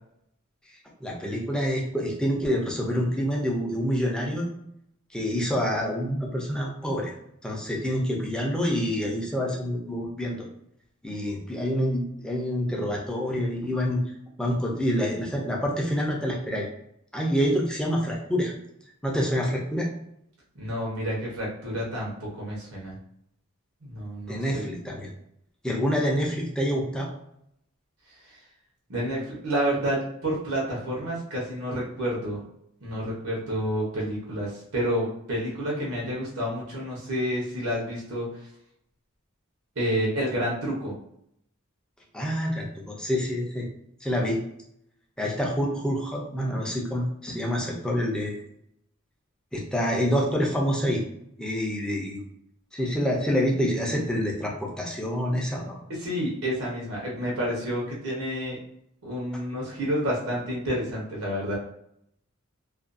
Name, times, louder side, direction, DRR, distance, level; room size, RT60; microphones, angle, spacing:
voice 1, 1.0-4.5 5.1-7.2 7.4-10.4 11.0-14.0 14.4-16.7 17.1-18.5 19.0-19.9 24.3-25.1 25.6-27.1 42.1-43.7 44.0-44.4 45.2-48.4 49.5-51.0 51.4-52.2 52.7-55.8, equal, 5° left, -2 dB, 0.5 m, -27 dB
voice 2, 20.5-23.0 23.8-24.6 28.9-32.4 32.8-38.3 39.8-40.9 55.9-58.6 59.0-61.6, equal, 90° right, -4 dB, 0.8 m, -29 dB
2.5 x 2.2 x 2.5 m, 0.74 s
head